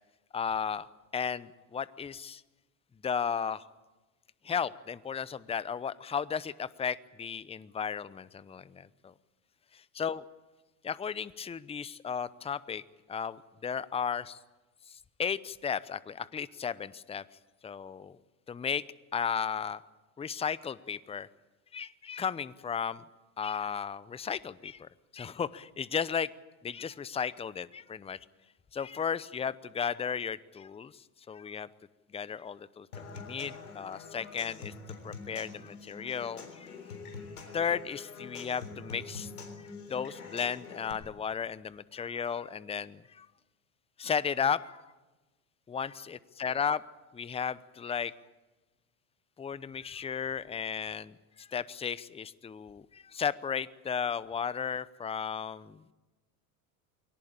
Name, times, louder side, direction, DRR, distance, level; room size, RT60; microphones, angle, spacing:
voice 1, 0.3-0.9 1.1-2.4 3.0-3.6 4.4-9.1 10.0-10.2 10.8-12.8 13.1-14.4 14.9-17.2 17.6-18.2 18.5-18.8 19.1-19.8 20.2-21.3 21.7-23.0 23.4-26.3 26.6-28.2 28.7-31.7 32.1-34.7 35.0-36.7 37.5-39.3 39.9-43.3 44.0-44.8 45.7-46.8 47.1-48.1 49.4-55.8, left 7 dB, 15° left, 18 dB, 0.7 m, -34 dB
Human voice / Acoustic guitar / Percussion, 32.9-40.9, left 4 dB, 90° left, 3.8 m, -45 dB
22.5 x 18.0 x 8.8 m, 1.1 s
hypercardioid pair, 85°, 43 cm